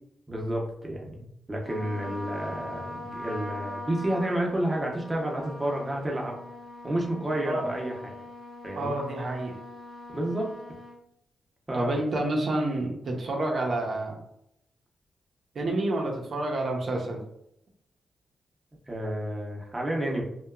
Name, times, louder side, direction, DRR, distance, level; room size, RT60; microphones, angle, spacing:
voice 1, 0.3-6.4 6.8-8.1 8.6-8.9 10.1-10.5 11.7-12.0 18.9-20.2, right 1 dB, 20° right, -1 dB, 0.7 m, -30 dB
Trumpet, 1.6-11.0, left 1 dB, 75° left, 0.7 m, -41 dB
voice 2, 8.8-9.6 11.7-14.2 15.5-17.2, right 1 dB, 60° right, 0 dB, 0.6 m, -29 dB
2.8 x 2.2 x 2.3 m, 0.76 s
cardioid pair, 85°, 0 cm